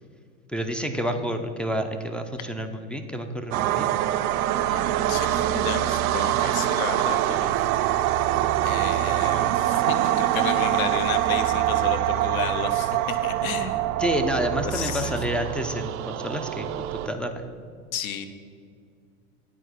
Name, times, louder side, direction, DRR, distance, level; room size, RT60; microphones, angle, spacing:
voice 1, 0.5-3.9 14.0-17.4, equal, 5° left, 6 dB, 0.3 m, -29 dB
sound 1, 3.5-17.1, right 13 dB, 75° right, 0.5 m, -24 dB
voice 2, 4.7-7.5 8.6-13.9 14.6-15.1 17.9-18.3, left 7 dB, 75° left, 9 dB, 0.9 m, -33 dB
10.0 x 4.6 x 6.1 m, 2.2 s
hypercardioid pair, 90°, 43 cm